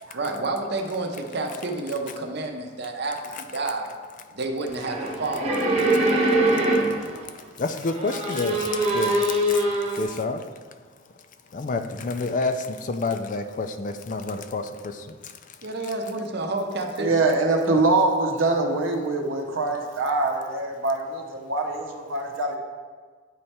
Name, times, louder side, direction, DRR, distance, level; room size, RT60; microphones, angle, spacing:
voice 1, 0.1-3.9 4.3-6.0 15.6-17.2, right 2 dB, 55° right, 4 dB, 0.7 m, -30 dB
sound 1, 4.7-7.2 7.8-10.0, right 1 dB, 35° right, 1.1 m, -23 dB
voice 2, 7.6-9.6 9.9-10.4 11.5-15.1 17.7-17.8, left 3 dB, 40° left, 9 dB, 0.4 m, -29 dB
voice 3, 17.0-22.6, right 3 dB, 90° right, 3 dB, 0.8 m, -24 dB
9.4 x 3.3 x 4.3 m, 1.5 s
head